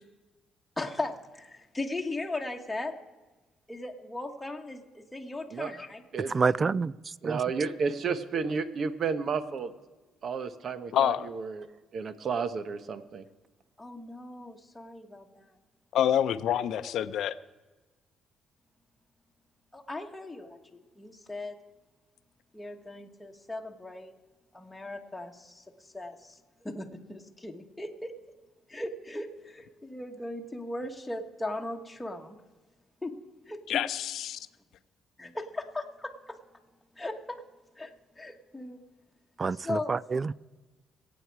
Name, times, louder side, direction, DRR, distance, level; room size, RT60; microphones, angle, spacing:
voice 1, 0.8-2.9 3.7-6.0 13.8-15.6 19.7-21.6 22.5-24.1 24.5-28.1 28.7-32.4 33.0-33.1 33.5-33.6 35.2-36.4 37.0-37.4 37.8-38.8 39.6-39.9, left 2 dB, 10° left, 2 dB, 1.4 m, -38 dB
voice 2, 6.3-7.4 39.4-40.3, right 4 dB, 35° right, 22 dB, 0.3 m, -28 dB
voice 3, 7.2-9.7 10.2-11.7 11.9-13.2, right 5 dB, 55° right, 12 dB, 1.0 m, -32 dB
voice 4, 10.9-11.3 15.9-17.3 33.7-34.0, left 10 dB, 75° left, 13 dB, 0.6 m, -26 dB
23.5 x 8.5 x 4.7 m, 1.3 s
cardioid pair, 100°, 0 cm